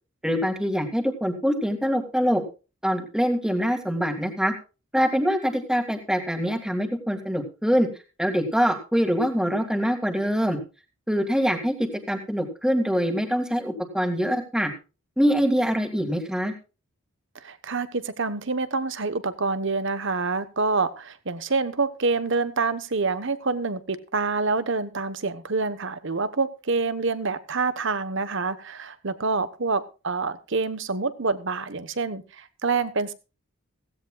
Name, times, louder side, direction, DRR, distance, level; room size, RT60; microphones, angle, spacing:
voice 1, 0.2-2.4 2.8-4.5 4.9-7.9 8.2-10.6 11.1-11.7 12.1-14.7 15.2-16.5, equal, 5° right, 5 dB, 2.1 m, -24 dB
voice 2, 17.4-33.1, right 4 dB, 60° right, 13 dB, 1.1 m, -27 dB
16.5 x 16.0 x 2.4 m, 0.31 s
head